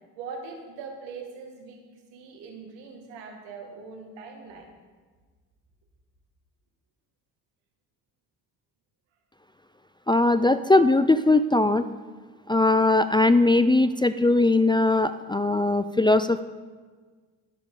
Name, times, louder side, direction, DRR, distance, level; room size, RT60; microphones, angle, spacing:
voice 1, 0.2-1.8 2.1-4.7, right 4 dB, 80° right, 2 dB, 2.2 m, -41 dB
voice 2, 10.1-11.8 12.5-16.4, left 2 dB, 10° left, 10 dB, 0.4 m, -20 dB
21.0 x 7.1 x 3.8 m, 1.5 s
hypercardioid pair, 60°, 43 cm